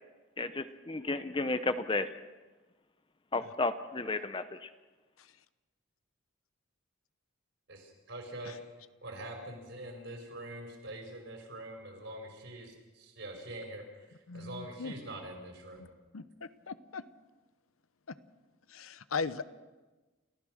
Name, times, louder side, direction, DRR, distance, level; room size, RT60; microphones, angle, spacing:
voice 1, 0.4-2.1 3.3-4.7, left 3 dB, 25° left, 11 dB, 0.7 m, -33 dB
voice 2, 7.7-8.6 9.0-15.9, right 1 dB, 55° right, 3 dB, 5.1 m, -44 dB
voice 3, 14.3-14.9 15.8-15.9 16.1-17.0 18.1-18.2 18.7-19.4, left 4 dB, 80° left, 14 dB, 0.8 m, -38 dB
29.5 x 14.5 x 6.4 m, 1.2 s
head